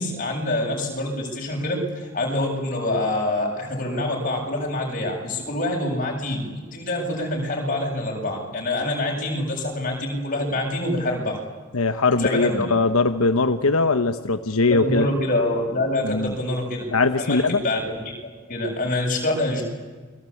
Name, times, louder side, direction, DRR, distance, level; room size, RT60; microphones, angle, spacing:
voice 1, 0.0-11.4 12.2-12.6 14.7-16.8 17.2-19.6, left 1 dB, 40° left, 0 dB, 7.8 m, -26 dB
voice 2, 11.7-15.1 16.0-16.3 16.9-17.6, left 3 dB, 85° left, 8 dB, 1.1 m, -21 dB
29.0 x 22.5 x 8.7 m, 1.4 s
head